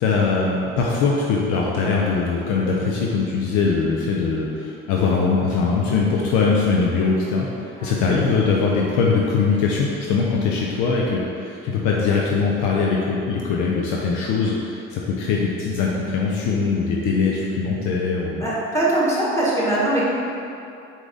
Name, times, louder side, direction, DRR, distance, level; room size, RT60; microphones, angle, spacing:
voice 1, 0.0-18.4, left 4 dB, 75° left, -3 dB, 0.6 m, -21 dB
voice 2, 18.4-20.1, right 1 dB, 10° left, -8 dB, 1.5 m, -21 dB
4.5 x 2.7 x 3.8 m, 2.7 s
supercardioid pair, 70°, 30 cm